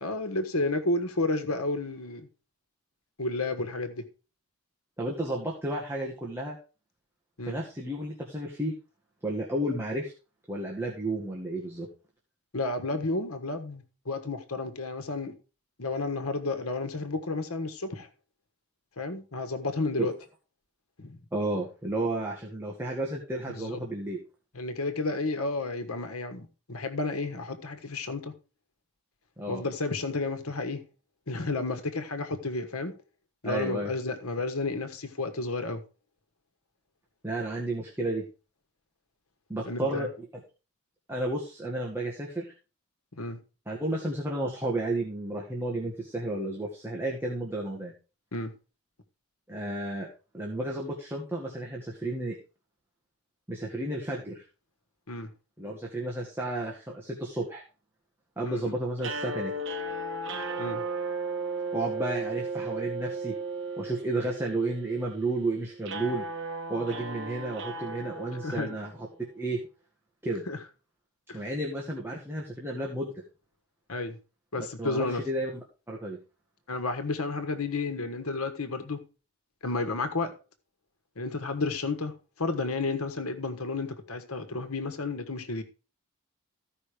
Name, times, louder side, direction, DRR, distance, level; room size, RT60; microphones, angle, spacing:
voice 1, 0.0-2.3 3.2-4.0 7.4-7.6 12.5-15.3 15.8-18.1 19.0-20.1 21.0-21.2 23.5-23.8 24.5-28.3 29.5-30.8 31.3-32.9 33.4-35.8 39.7-40.1 43.1-43.4 48.3-48.5 55.1-55.3 58.4-58.7 60.6-60.8 68.4-68.7 70.5-70.6 71.3-71.4 73.9-74.2 74.5-75.2 76.7-79.0 79.6-80.3 81.2-82.1 82.4-85.6, left 3 dB, 80° left, 1.5 m, -31 dB
voice 2, 5.0-6.6 7.4-8.7 9.2-10.1 10.5-11.9 20.0-20.1 21.3-24.2 29.4-29.6 33.4-33.9 37.2-38.2 39.5-40.4 41.1-42.5 43.6-47.9 49.5-50.1 50.3-52.4 53.5-54.4 55.6-57.6 58.4-59.5 61.7-63.3 63.8-66.2 66.7-68.9 69.3-69.6 70.2-70.4 71.3-73.1 74.6-75.5 75.9-76.2, right 2 dB, 10° right, 1.8 m, -32 dB
sound 1, 59.0-69.2, right 3 dB, 55° right, 1.5 m, -35 dB
15.0 x 5.6 x 5.0 m
head